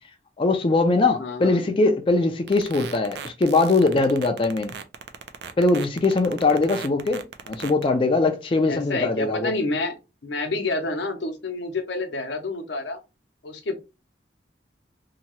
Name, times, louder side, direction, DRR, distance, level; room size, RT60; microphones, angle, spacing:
voice 1, 0.4-4.7 5.6-9.5, left 3 dB, 30° left, 0.3 m, -21 dB
voice 2, 1.2-1.6 7.0-7.1 8.7-9.9 10.2-13.0 13.4-13.8, left 2 dB, 80° left, 0.7 m, -28 dB
sound 1, 2.5-7.8, right 7 dB, 70° right, 0.4 m, -37 dB
2.8 x 2.2 x 2.9 m
head